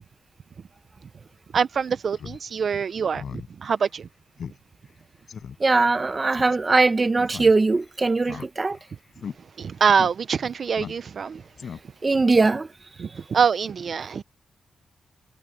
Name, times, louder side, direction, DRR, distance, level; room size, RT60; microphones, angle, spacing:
voice 1, 1.5-4.1 8.3-8.4 9.6-11.4 13.0-14.2, right 6 dB, 55° right, 0.5 m, -24 dB
Speech synthesizer, 2.2-2.4 2.8-2.9 3.1-3.5 3.8-3.9 4.4-4.6 4.9-5.0 5.3-5.6 6.3-6.6 7.3-7.8 8.2-8.8 9.2-9.4 10.0-10.1 10.8-11.2 11.6-12.1, left 7 dB, 65° left, 5.5 m, -37 dB
voice 2, 5.6-8.8 12.0-12.7, right 3 dB, 25° right, 0.8 m, -20 dB
wide cardioid pair, 140°, 0 cm